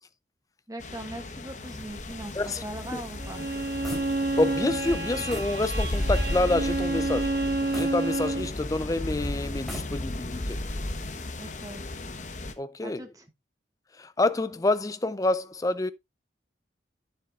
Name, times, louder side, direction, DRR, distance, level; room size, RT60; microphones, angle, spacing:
voice 1, 0.7-3.4 11.4-11.9 12.8-13.3, right 1 dB, 20° right, 1.2 m, -40 dB
sound 1, 0.8-12.5, left 1 dB, 40° left, 1.0 m, -34 dB
sound 2, 1.7-4.6 4.8-5.0 5.3-5.6 6.1-6.2 7.7-8.7 9.5-10.4, equal, ahead, 3.2 m, -42 dB
Bowed string instrument, 3.2-8.5, right 2 dB, 65° right, 1.8 m, -29 dB
voice 2, 4.4-7.4 7.7-10.6 12.6-13.0 14.0-15.9, left 2 dB, 20° left, 0.4 m, -27 dB
10.0 x 7.1 x 2.4 m
head